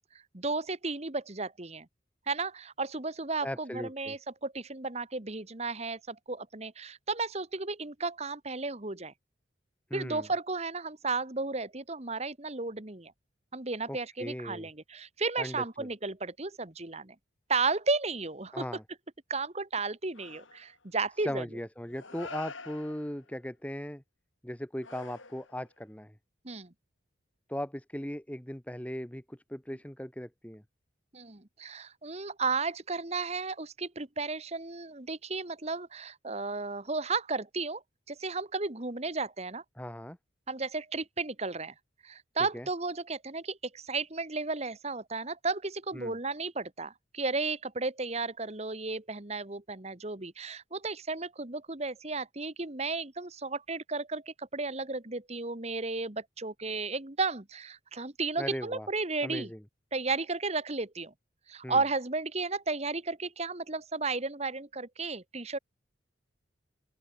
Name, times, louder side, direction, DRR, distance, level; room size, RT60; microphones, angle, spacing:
voice 1, 0.3-1.9 2.3-9.1 9.9-13.1 13.5-17.1 17.5-18.7 19.3-21.4 26.4-26.7 31.1-37.8 38.1-39.6 40.5-41.7 42.0-59.5 59.9-61.1 61.5-65.6, right 3 dB, 35° right, 1.6 m, -34 dB
voice 2, 3.4-4.2 9.9-10.3 13.9-14.7 15.4-15.9 18.5-18.8 21.2-24.0 24.4-26.1 27.5-30.6 39.8-40.2 42.5-42.7 45.9-46.2 58.4-58.9 59.2-59.6 61.6-61.8, equal, 5° left, 1.4 m, -38 dB
sound 1, 20.1-20.8 21.9-23.4 24.8-25.8, left 4 dB, 90° left, 6.9 m, -46 dB
open air
head